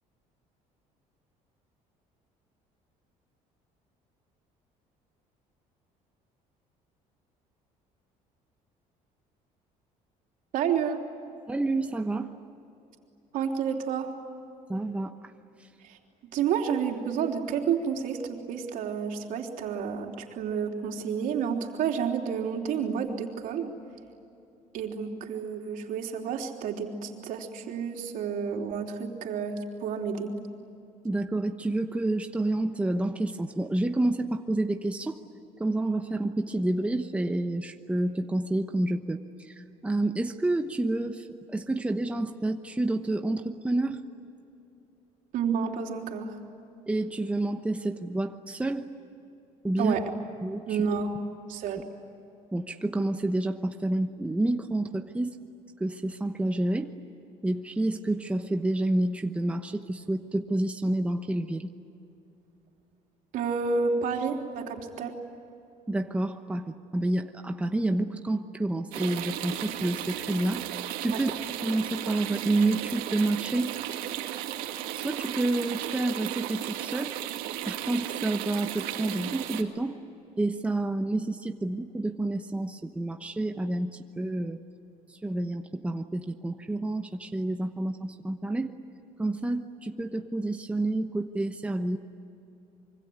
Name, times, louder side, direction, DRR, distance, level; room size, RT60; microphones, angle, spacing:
voice 1, 10.5-11.0 13.3-14.1 15.8-16.0 16.3-23.7 24.7-30.4 45.3-46.4 49.8-50.1 50.7-51.1 51.5-51.8 63.3-65.2 71.1-71.2, right 6 dB, 70° right, 2 dB, 3.5 m, -30 dB
voice 2, 11.5-12.3 14.7-15.3 31.0-35.2 35.6-44.0 46.9-48.9 49.6-50.0 50.4-50.8 52.5-55.4 55.8-56.9 57.4-61.7 65.9-70.6 71.0-71.3 71.6-73.7 74.9-77.1 77.7-80.0 80.4-84.6 85.1-88.7 89.2-92.0, right 2 dB, 10° right, 5 dB, 1.1 m, -29 dB
sound 1, 68.9-79.6, right 12 dB, 90° right, 2.2 m, -35 dB
25.5 x 24.5 x 9.5 m, 2.8 s
cardioid pair, 125°, 15 cm